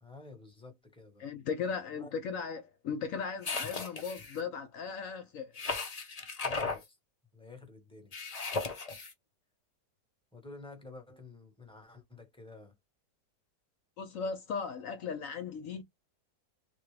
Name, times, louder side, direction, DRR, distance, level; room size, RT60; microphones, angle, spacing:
voice 1, 0.0-1.3 1.9-2.1 6.4-7.0 7.3-8.1 10.3-12.7, left 3 dB, 5° left, 1.1 m, -50 dB
voice 2, 1.2-5.5 14.0-15.8, left 6 dB, 65° left, 0.9 m, -37 dB
sound 1, 3.4-4.4 5.6-6.8 8.1-9.1, left 4 dB, 40° left, 0.5 m, -36 dB
3.6 x 2.3 x 3.2 m
omnidirectional pair, 1.7 m